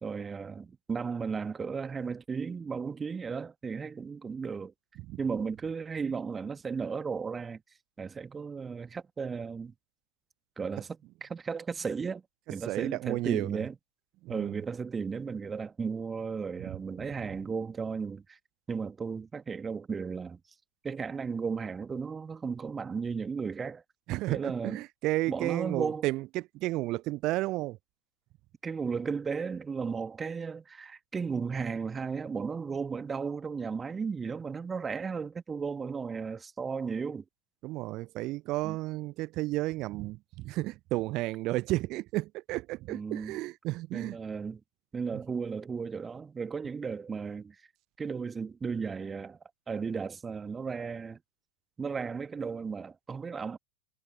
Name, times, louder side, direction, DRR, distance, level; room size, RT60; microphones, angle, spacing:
voice 1, 0.0-4.7 5.2-7.6 8.0-9.7 10.6-12.2 12.5-13.7 14.3-18.4 18.7-20.4 20.8-23.8 24.3-24.8 25.3-26.1 28.6-37.2 38.6-38.8 42.9-43.4 43.9-44.6 44.9-47.6 48.0-49.4 49.7-51.2 51.8-53.6, right 5 dB, 15° right, 1.8 m, -35 dB
voice 2, 12.7-13.6 14.2-14.6 16.6-16.8 24.1-27.8 37.6-44.2, right 19 dB, 40° right, 0.5 m, -32 dB
figure-of-eight pair, 90°, 0 cm